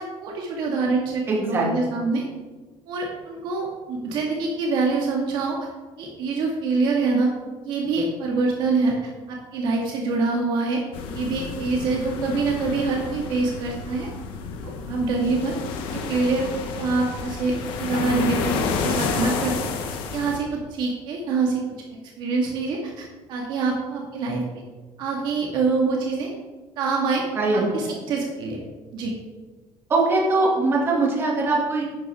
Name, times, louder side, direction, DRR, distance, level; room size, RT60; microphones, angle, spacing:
voice 1, 0.0-2.2 2.9-5.7 6.0-7.3 7.6-10.8 11.1-14.1 14.6-15.5 15.9-16.5 16.7-19.8 20.1-21.6 22.2-24.4 25.0-26.3 26.8-27.2 27.5-28.6 28.9-29.1, right 3 dB, 55° right, 0 dB, 1.8 m, -25 dB
voice 2, 1.3-1.7 27.4-27.6 29.9-31.9, right 3 dB, 25° right, -2 dB, 2.3 m, -21 dB
sound 1, 10.9-20.4, left 5 dB, 65° left, 1.3 m, -30 dB
11.5 x 9.9 x 3.6 m, 1.3 s
cardioid pair, 180°, 10 cm